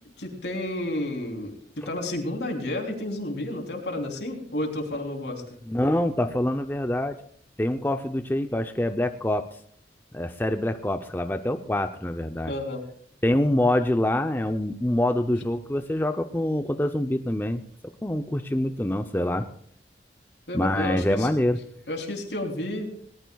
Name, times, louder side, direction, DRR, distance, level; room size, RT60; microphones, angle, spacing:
voice 1, 0.2-1.5 1.8-5.4 12.5-12.8 20.5-21.3 21.9-22.9, left 1 dB, 80° left, 2 dB, 3.3 m, -31 dB
voice 2, 5.7-7.2 7.6-9.5 10.1-12.5 13.2-17.6 18.0-19.5 20.5-21.6, left 1 dB, 10° left, 8 dB, 0.5 m, -25 dB
20.5 x 18.5 x 2.3 m, 0.63 s
head